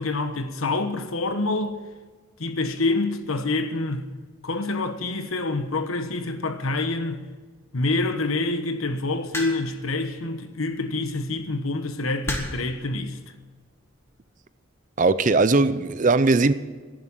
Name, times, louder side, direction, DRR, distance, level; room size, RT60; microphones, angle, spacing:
voice 1, 0.0-1.8 2.4-4.1 4.4-7.2 7.7-13.2, left 2 dB, 85° left, 1.3 m, -27 dB
sound 1, 9.3-9.9 11.1-11.3 12.3-12.7 13.7-14.0, left 1 dB, 10° left, 1.7 m, -32 dB
voice 2, 15.0-16.5, right 3 dB, 40° right, 0.5 m, -19 dB
11.0 x 10.5 x 9.0 m
head